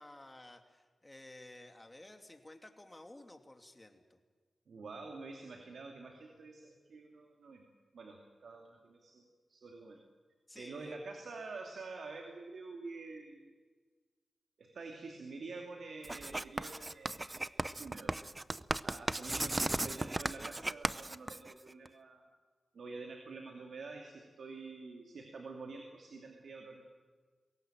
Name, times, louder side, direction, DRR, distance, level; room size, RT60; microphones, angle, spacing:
voice 1, 0.0-4.2 10.5-11.0, left 1 dB, 20° left, 5 dB, 2.8 m, -54 dB
voice 2, 4.7-7.7 7.9-10.0 10.5-13.5 14.6-18.2 18.8-22.2 22.7-26.8, right 3 dB, 80° right, 2 dB, 2.6 m, -48 dB
Writing, 16.0-21.9, right 2 dB, 30° right, 0.6 m, -36 dB
22.0 x 17.5 x 9.0 m, 1.5 s
cardioid pair, 55°, 0 cm